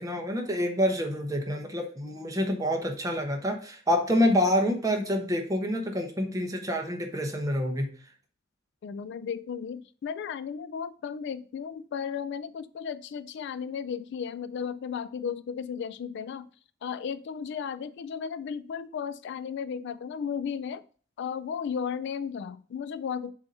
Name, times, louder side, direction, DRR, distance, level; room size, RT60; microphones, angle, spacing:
voice 1, 0.0-7.9, equal, 15° right, 3 dB, 1.1 m, -27 dB
voice 2, 8.8-16.5 16.8-20.8 21.2-23.3, left 7 dB, 60° left, 13 dB, 0.3 m, -35 dB
7.0 x 2.8 x 5.3 m, 0.42 s
head